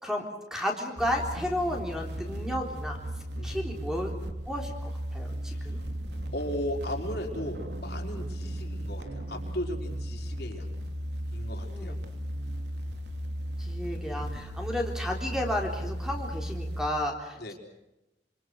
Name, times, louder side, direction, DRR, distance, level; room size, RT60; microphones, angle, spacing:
voice 1, 0.0-3.0 3.4-4.1 4.5-4.7 5.1-5.8 11.6-12.0 13.6-17.5, left 1 dB, 5° right, 1 dB, 3.8 m, -32 dB
sound 1, 1.0-16.9, equal, 80° right, 3.4 m, -36 dB
voice 2, 5.5-5.9 6.3-10.7 11.3-12.0 17.4-17.5, left 1 dB, 65° left, 2 dB, 4.7 m, -36 dB
27.0 x 26.5 x 6.5 m, 0.94 s
head